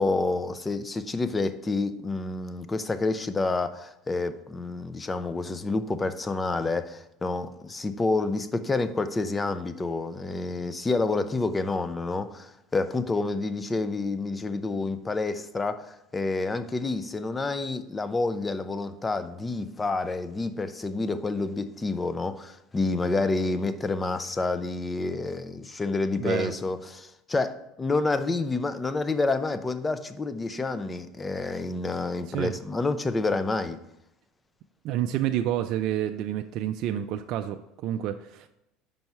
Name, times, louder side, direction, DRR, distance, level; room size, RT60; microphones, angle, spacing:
voice 1, 0.0-33.8, left 3 dB, 15° left, 12 dB, 0.5 m, -28 dB
voice 2, 26.2-26.5 32.3-32.6 34.8-38.5, right 11 dB, 55° right, 6 dB, 0.3 m, -29 dB
5.3 x 4.6 x 5.6 m, 0.85 s
supercardioid pair, 120°, 0 cm